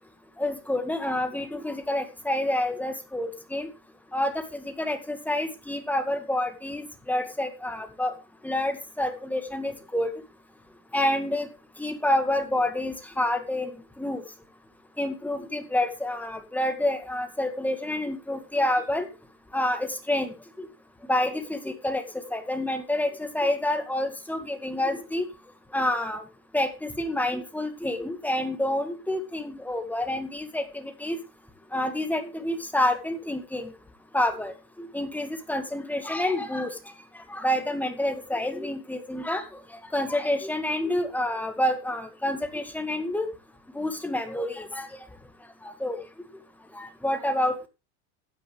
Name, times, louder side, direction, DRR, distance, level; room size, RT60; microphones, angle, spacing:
voice 1, 0.4-3.7 4.1-8.2 8.4-10.1 10.9-11.5 11.8-14.2 15.0-19.1 19.5-20.7 21.1-22.0 22.3-25.2 25.7-26.2 26.5-31.2 31.7-33.7 34.1-36.7 37.3-39.4 39.7-43.3 43.7-44.9 45.6-46.0 46.7-47.7, left 1 dB, 5° left, 7 dB, 2.0 m, -28 dB
15.0 x 9.3 x 3.5 m, 0.28 s
supercardioid pair, 130°, 45 cm